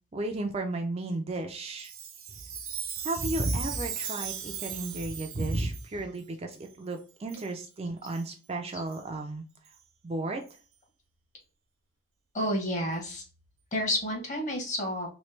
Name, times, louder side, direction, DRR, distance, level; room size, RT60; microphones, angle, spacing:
voice 1, 0.1-1.9 3.0-9.4 10.0-10.5, right 2 dB, 30° right, 4 dB, 0.4 m, -33 dB
Chime, 1.8-5.9 6.5-6.6 7.3-7.5 8.0-8.2 8.9-9.0 9.6-9.7 10.5-10.6, right 8 dB, 80° right, 0.8 m, -38 dB
voice 2, 12.3-13.2 13.7-15.1, equal, 35° left, 1 dB, 1.1 m, -30 dB
3.2 x 3.1 x 3.2 m, 0.37 s
head